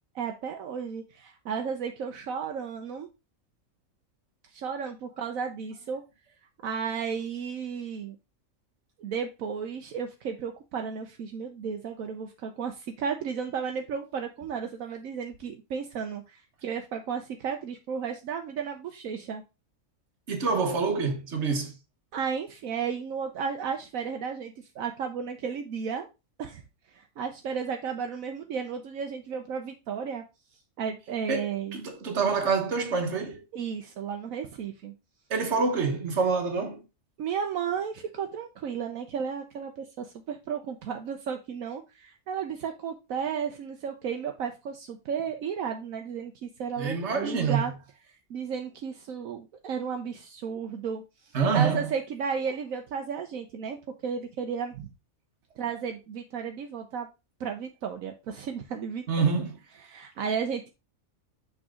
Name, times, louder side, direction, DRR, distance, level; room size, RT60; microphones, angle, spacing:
voice 1, 0.2-3.1 4.5-6.0 6.6-8.2 9.0-19.4 22.1-26.1 26.4-26.6 26.9-30.2 30.8-31.8 33.5-34.9 37.2-47.7 48.3-51.0 51.5-53.8 54.0-54.9 55.6-57.1 57.4-59.0 59.8-60.7, right 6 dB, 80° right, 1.2 m, -33 dB
voice 2, 20.3-21.7 31.3-33.4 35.3-36.8 46.8-47.7 51.3-51.9 59.1-59.6, right 5 dB, 55° right, 1.5 m, -26 dB
6.2 x 4.0 x 4.7 m
omnidirectional pair, 1.4 m